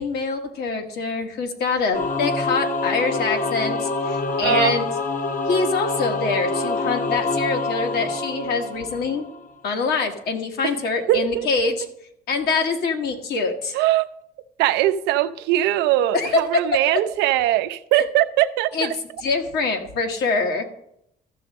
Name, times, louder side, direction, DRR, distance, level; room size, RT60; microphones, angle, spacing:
voice 1, 0.0-4.9 5.5-9.3 9.6-11.8 12.3-13.8 16.1-16.6 18.0-18.1 18.7-18.9 19.2-20.6, left 4 dB, 70° left, 1.4 m, -24 dB
Singing / Musical instrument, 1.9-9.4, left 2 dB, 50° left, 0.9 m, -26 dB
voice 2, 4.4-4.8 10.6-10.8 11.1-11.5 13.7-14.1 14.6-18.9, right 14 dB, 90° right, 0.5 m, -21 dB
13.5 x 6.3 x 4.2 m
cardioid pair, 110°, 17 cm